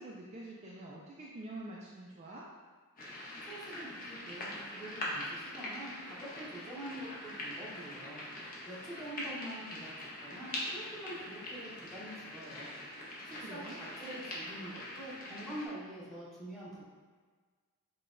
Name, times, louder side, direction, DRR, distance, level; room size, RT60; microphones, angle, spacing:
voice 1, 0.0-2.5 13.3-13.8, right 2 dB, 30° right, -4 dB, 0.3 m, -46 dB
sound 1, 3.0-15.7, left 1 dB, 40° left, 0.7 m, -43 dB
voice 2, 3.5-8.2 8.6-12.7 13.2-16.9, right 1 dB, ahead, -8 dB, 0.9 m, -46 dB
5.7 x 2.2 x 2.5 m, 1.5 s
head